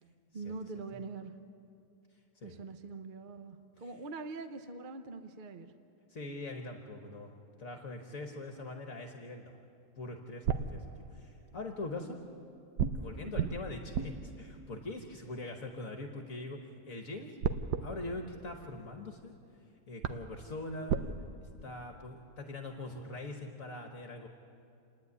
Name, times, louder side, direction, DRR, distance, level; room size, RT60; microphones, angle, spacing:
voice 1, 0.3-1.3 2.4-5.7 13.2-13.5, right 3 dB, 45° right, 8 dB, 0.7 m, -43 dB
voice 2, 6.1-7.3 7.6-9.6 10.0-12.2 12.9-17.4 17.8-19.3 19.9-21.0 21.6-24.3, left 2 dB, 55° left, 4 dB, 1.5 m, -42 dB
sound 1, 10.0-11.6 12.8-16.1 17.4-19.3 19.7-19.8 20.0-21.1, right 7 dB, 80° right, 1.3 m, -37 dB
28.5 x 10.0 x 9.6 m, 2.6 s
omnidirectional pair, 1.7 m